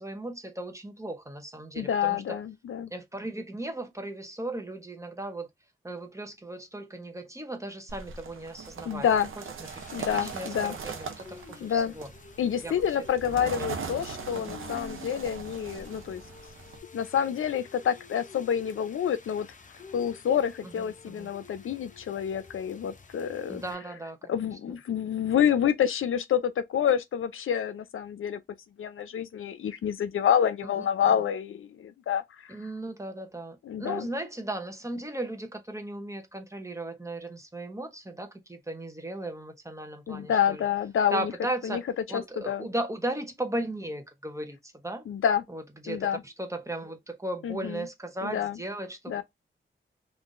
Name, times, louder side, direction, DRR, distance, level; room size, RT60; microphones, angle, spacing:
voice 1, 0.0-2.4 2.9-5.5 5.8-9.1 9.4-12.1 12.6-12.8 13.3-13.5 14.3-14.6 20.6-21.3 23.5-24.3 30.6-30.8 32.5-40.6 41.1-41.8 42.1-45.0 45.5-49.2, right 1 dB, 15° right, 0.7 m, -36 dB
voice 2, 1.8-2.9 8.8-9.3 9.9-10.8 11.6-11.9 12.4-16.2 16.9-19.5 19.9-23.6 24.3-28.4 28.8-32.6 33.6-34.1 40.1-41.3 41.6-41.8 42.1-42.7 45.1-45.4 45.9-46.2 47.4-47.9 48.2-48.6 49.1-49.2, left 8 dB, 85° left, 0.5 m, -28 dB
sound 1, 7.9-16.8, right 5 dB, 85° right, 0.6 m, -40 dB
Rain, 9.6-23.7, left 4 dB, 40° left, 0.6 m, -50 dB
3.7 x 2.5 x 2.4 m
wide cardioid pair, 75°, 21 cm